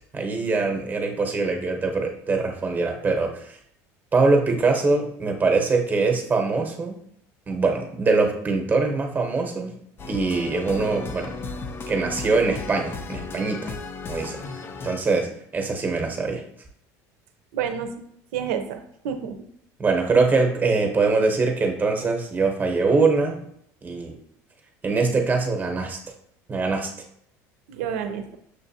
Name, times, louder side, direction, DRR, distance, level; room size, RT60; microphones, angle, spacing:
voice 1, 0.1-3.6 4.1-6.9 7.5-9.8 10.1-11.3 11.9-13.7 14.1-14.4 14.8-16.4 19.8-23.4 23.8-24.2 24.8-26.0 26.5-26.9, right 3 dB, 25° right, 3 dB, 0.9 m, -23 dB
sound 1, 10.0-15.0, left 4 dB, 30° left, 0.5 m, -35 dB
voice 2, 17.5-17.9 18.3-18.8 19.0-19.4 27.7-28.4, right 8 dB, 85° right, 7 dB, 0.6 m, -28 dB
6.5 x 2.5 x 2.7 m, 0.70 s
supercardioid pair, 115°, 8 cm